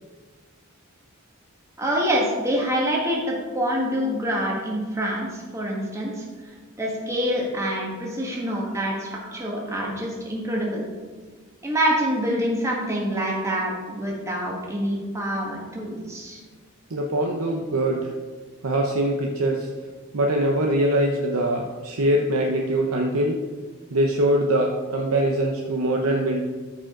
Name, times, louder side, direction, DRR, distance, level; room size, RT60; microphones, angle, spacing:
voice 1, 1.8-6.2 6.8-10.8 11.6-16.4, equal, 15° right, -3 dB, 1.6 m, -26 dB
voice 2, 16.9-18.1 18.6-19.7 20.1-23.4 23.9-26.4, right 1 dB, 85° right, 1 dB, 0.8 m, -23 dB
13.5 x 5.0 x 3.8 m, 1.4 s
head